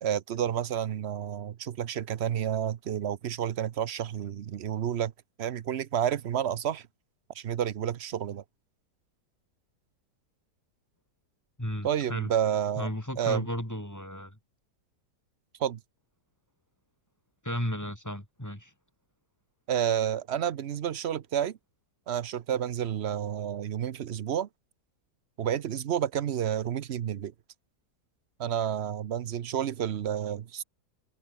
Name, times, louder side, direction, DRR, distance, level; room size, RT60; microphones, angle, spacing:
voice 1, 0.0-5.1 5.4-6.9 7.3-8.4 11.8-12.9 13.2-13.5 15.6-15.8 19.7-21.6 22.1-24.5 25.4-27.3 28.4-30.6, right 9 dB, 55° right, 0.8 m, -30 dB
voice 2, 11.6-12.3 12.8-14.4 17.4-18.7, equal, 10° left, 5.2 m, -34 dB
omnidirectional pair, 1.8 m